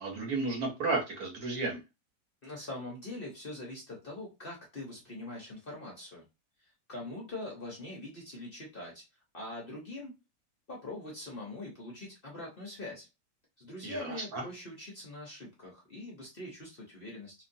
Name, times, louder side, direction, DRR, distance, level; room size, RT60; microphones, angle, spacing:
voice 1, 0.0-1.8 13.8-14.4, right 3 dB, 65° right, 1 dB, 1.3 m, -33 dB
voice 2, 2.4-6.2 6.9-9.0 9.3-10.1 10.7-13.1 13.6-17.3, left 2 dB, 45° left, -2 dB, 0.8 m, -43 dB
3.0 x 2.4 x 2.6 m, 0.26 s
omnidirectional pair, 1.8 m